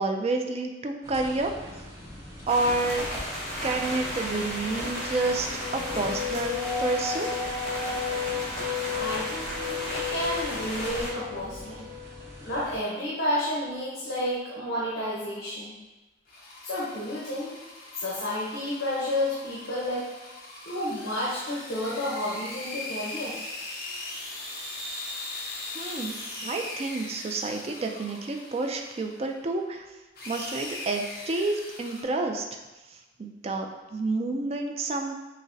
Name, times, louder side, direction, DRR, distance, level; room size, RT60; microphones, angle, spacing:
voice 1, 0.0-1.7 2.5-3.1 3.6-5.5 5.7-7.3 25.7-26.2 26.4-29.8 30.3-32.5 33.2-35.1, right 3 dB, 30° right, 3 dB, 0.3 m, -29 dB
sound 1, 1.0-12.8, left 5 dB, 15° right, 0.8 m, -35 dB
sound 2, 2.5-11.1, equal, 15° left, 1.4 m, -35 dB
voice 2, 8.9-11.9 12.5-15.8 16.6-17.6 18.0-20.3 20.7-23.4, left 1 dB, 80° left, -7 dB, 0.9 m, -31 dB
sound 3, 16.3-29.4 30.2-32.0, left 2 dB, 50° left, 0.7 m, -40 dB
6.2 x 2.1 x 2.6 m, 1.1 s
head